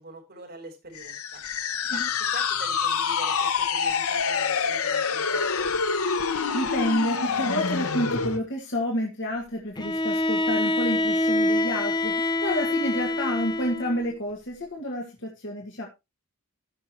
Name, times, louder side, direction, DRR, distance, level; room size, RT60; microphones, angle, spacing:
voice 1, 0.0-1.4 1.9-2.0 2.3-5.7, right 2 dB, 50° right, 0 dB, 4.4 m, -44 dB
sound 1, 0.9-8.4, left 5 dB, 80° left, 1.0 m, -26 dB
voice 2, 6.5-15.9, equal, 55° left, 0 dB, 2.1 m, -29 dB
Bowed string instrument, 9.8-14.1, left 2 dB, 20° left, 0.6 m, -25 dB
18.0 x 6.2 x 3.0 m, 0.24 s
head